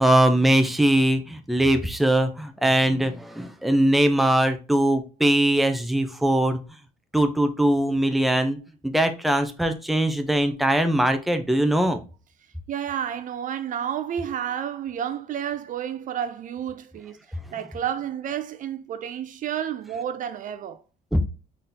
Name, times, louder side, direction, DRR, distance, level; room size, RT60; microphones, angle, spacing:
voice 1, 0.0-6.6 7.1-8.6 8.8-12.0 21.1-21.2, right 1 dB, ahead, 0.6 m, -21 dB
voice 2, 12.7-17.2 17.5-20.8, right 9 dB, 50° right, 0.5 m, -30 dB
3.9 x 3.8 x 2.7 m
cardioid pair, 110°, 17 cm